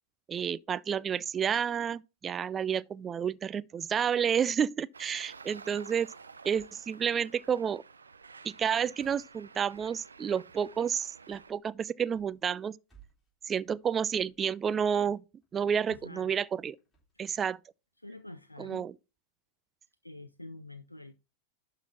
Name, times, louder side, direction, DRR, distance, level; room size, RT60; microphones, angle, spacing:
voice 1, 0.3-6.1 6.4-7.8 8.4-12.8 13.4-15.2 15.5-16.8 17.2-17.6 18.6-18.9, right 7 dB, 20° right, 0.3 m, -30 dB
Traffic noise roadway noise, 4.9-11.5, right 5 dB, 75° right, 0.5 m, -51 dB
sound 1, 6.5-7.1 7.4-8.0 8.3-17.3, right 4 dB, 10° left, 4.1 m, -65 dB
voice 2, 15.9-16.3 17.1-17.3 18.0-18.8 20.0-21.1, left 2 dB, 85° left, 0.5 m, -47 dB
11.5 x 3.9 x 4.3 m
figure-of-eight pair, 90°, 0 cm